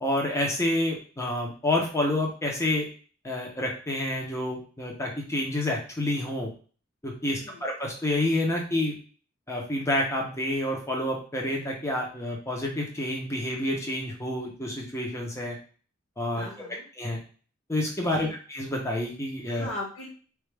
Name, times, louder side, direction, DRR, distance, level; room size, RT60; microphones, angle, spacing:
voice 1, 0.0-2.9 3.2-6.5 7.0-8.9 9.5-15.6 16.2-16.5 17.0-17.2 17.7-19.7, left 1 dB, 15° left, -1 dB, 0.8 m, -28 dB
voice 2, 16.3-16.8 18.1-18.3 19.5-20.1, left 2 dB, 90° left, -2 dB, 1.5 m, -38 dB
4.7 x 2.4 x 3.3 m, 0.40 s
head